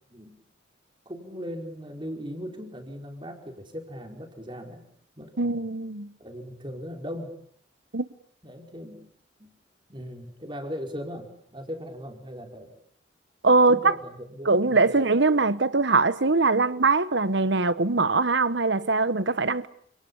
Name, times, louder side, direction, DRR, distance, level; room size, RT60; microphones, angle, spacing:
voice 1, 1.0-4.9 5.2-5.7 6.2-7.4 8.4-9.1 9.4-9.5 9.9-12.8 13.7-15.1, equal, 25° right, 4.9 m, -38 dB
voice 2, 5.4-6.1 7.9-8.1 13.4-13.9 14.4-19.7, right 3 dB, 70° right, 1.3 m, -22 dB
29.5 x 27.5 x 7.2 m
head